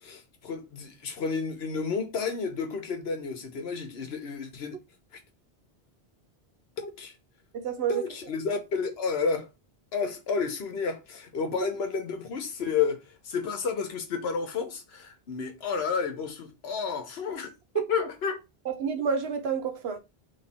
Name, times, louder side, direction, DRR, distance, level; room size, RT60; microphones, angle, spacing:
voice 1, 0.0-4.8 6.8-7.1 7.9-9.5 9.9-17.5 17.9-18.4, left 5 dB, 80° left, 1.1 m, -31 dB
voice 2, 7.5-8.0 11.6-11.7 17.7-18.1 18.7-20.0, right 6 dB, 80° right, 1.0 m, -29 dB
3.3 x 3.2 x 4.1 m
omnidirectional pair, 1.1 m